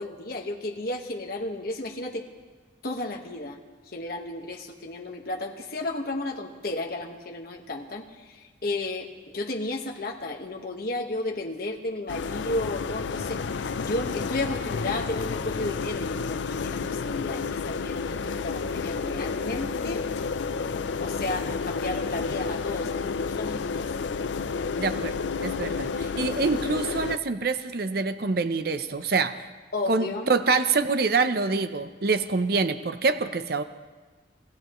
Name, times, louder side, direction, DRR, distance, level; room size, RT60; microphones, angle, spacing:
voice 1, 0.0-2.2 2.8-3.6 3.9-13.4 13.8-20.1 21.0-23.9 29.7-30.3, left 2 dB, 55° left, 2 dB, 1.4 m, -33 dB
sound 1, 12.1-27.2, left 5 dB, 75° left, 0.5 m, -30 dB
voice 2, 24.8-29.4 29.9-33.6, right 4 dB, 55° right, 10 dB, 0.6 m, -26 dB
27.5 x 16.5 x 3.1 m, 1.3 s
head